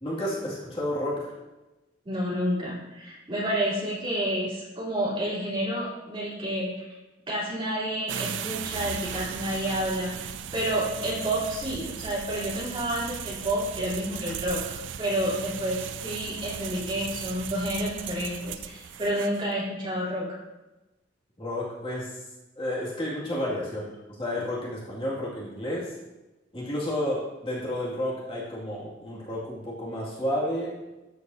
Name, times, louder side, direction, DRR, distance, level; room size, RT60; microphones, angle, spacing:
voice 1, 0.0-1.3 21.4-22.2 22.6-25.9 26.5-30.8, left 1 dB, 30° left, -6 dB, 2.2 m, -31 dB
voice 2, 2.0-6.9 7.3-10.1 10.5-14.6 15.0-20.3, right 1 dB, 30° right, -7 dB, 3.5 m, -29 dB
sound 1, 8.1-19.5, right 8 dB, 75° right, 0.4 m, -37 dB
13.0 x 8.2 x 2.7 m, 1.1 s
head